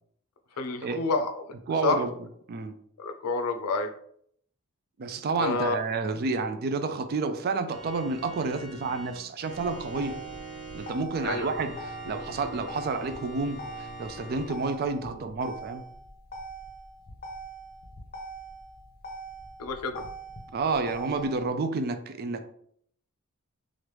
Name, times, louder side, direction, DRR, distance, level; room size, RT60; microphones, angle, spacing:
voice 1, 0.6-1.4 1.8-2.0 3.0-3.9 5.4-5.8 11.2-11.5 19.6-20.0, left 3 dB, 85° left, 6 dB, 0.5 m, -28 dB
voice 2, 1.7-2.1 2.5-2.7 5.0-10.2 10.7-15.8 20.5-22.5, right 4 dB, 45° right, 9 dB, 0.3 m, -30 dB
Organ, 7.7-14.5, equal, 75° right, 1.2 m, -43 dB
Motor vehicle (road), 9.5-21.5, right 2 dB, 45° left, 0.6 m, -43 dB
3.1 x 2.5 x 3.2 m, 0.65 s
head